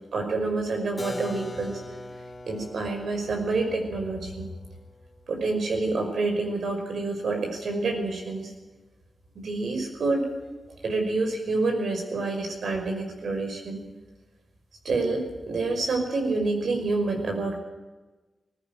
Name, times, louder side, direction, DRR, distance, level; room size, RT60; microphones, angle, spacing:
voice 1, 0.1-1.8 2.5-4.5 5.3-8.5 9.4-10.3 10.8-13.8 14.8-17.6, right 3 dB, 80° right, 3 dB, 5.4 m, -28 dB
Keyboard (musical), 1.0-6.6, left 1 dB, 25° left, 2.6 m, -41 dB
19.5 x 16.0 x 9.0 m, 1.2 s
wide cardioid pair, 90°, 0 cm